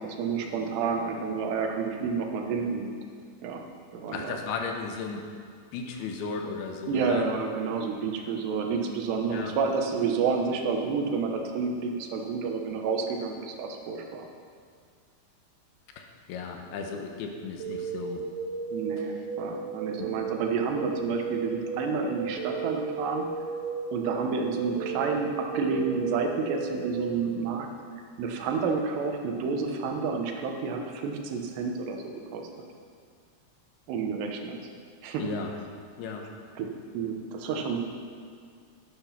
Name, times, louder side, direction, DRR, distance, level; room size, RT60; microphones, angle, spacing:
voice 1, 0.0-2.9 3.4-3.6 3.9-4.4 6.9-14.3 18.7-23.3 23.9-27.7 28.2-32.4 33.9-34.6 35.0-35.3 36.6-36.7 36.9-37.8, right 5 dB, 90° right, 3 dB, 3.3 m, -30 dB
voice 2, 4.1-5.2 5.7-7.2 9.3-9.5 16.0-18.2 20.0-20.1 35.2-35.5 36.0-36.2, left 5 dB, 75° left, 3 dB, 3.0 m, -35 dB
sound 1, 17.6-27.2, right 4 dB, 65° right, 2.3 m, -35 dB
11.5 x 11.0 x 5.8 m, 2.2 s
omnidirectional pair, 4.7 m